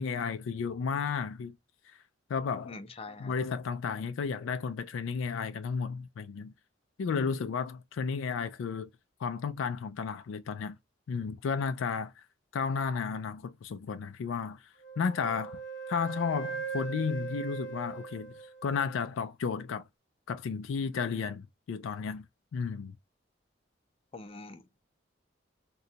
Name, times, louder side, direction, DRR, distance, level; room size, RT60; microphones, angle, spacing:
voice 1, 0.0-1.5 1.9-2.0 2.3-2.8 3.2-6.5 7.0-8.9 9.2-10.8 11.1-12.2 12.5-14.6 15.0-15.6 15.9-18.3 18.6-19.8 20.3-22.3 22.5-23.0, left 5 dB, 80° left, 0.3 m, -33 dB
voice 2, 2.7-3.3 24.1-24.8, left 3 dB, 30° left, 0.5 m, -44 dB
Wind instrument woodwind instrument, 14.8-19.0, right 5 dB, 65° left, 0.9 m, -40 dB
3.9 x 2.2 x 2.7 m
head